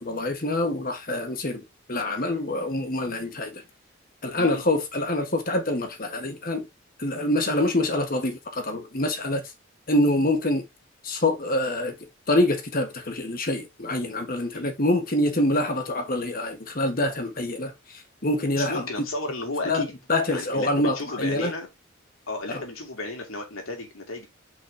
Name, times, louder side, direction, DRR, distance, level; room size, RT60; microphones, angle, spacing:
voice 1, 0.0-1.6 1.9-3.6 4.2-6.7 7.0-9.4 9.9-10.6 11.0-11.9 12.3-18.9 19.6-21.5 22.5-22.6, left 1 dB, 45° left, 1.5 m, -25 dB
voice 2, 18.5-19.9 20.3-21.7 22.3-24.3, left 2 dB, 80° left, 2.9 m, -33 dB
5.6 x 4.0 x 4.8 m
head